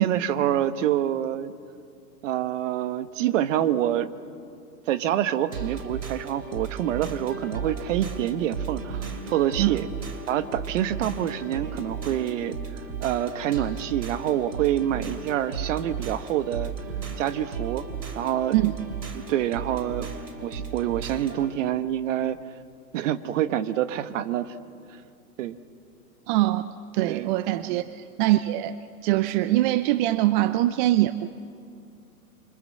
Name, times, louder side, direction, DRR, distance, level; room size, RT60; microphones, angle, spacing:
voice 1, 0.0-1.5 2.2-4.1 4.9-9.9 10.3-12.6 13.0-16.7 17.2-17.8 18.1-18.6 19.1-20.1 20.4-22.4 22.9-24.5 25.4-25.6 27.1-27.3 27.7-27.8, right 11 dB, 50° right, 12 dB, 1.4 m, -26 dB
sound 1, 5.5-21.5, right 5 dB, 85° right, 3.1 m, -35 dB
voice 2, 26.3-26.6 26.9-28.8 29.0-31.3, right 16 dB, 30° right, 14 dB, 0.6 m, -23 dB
27.0 x 25.0 x 7.7 m, 2.5 s
hypercardioid pair, 115°, 47 cm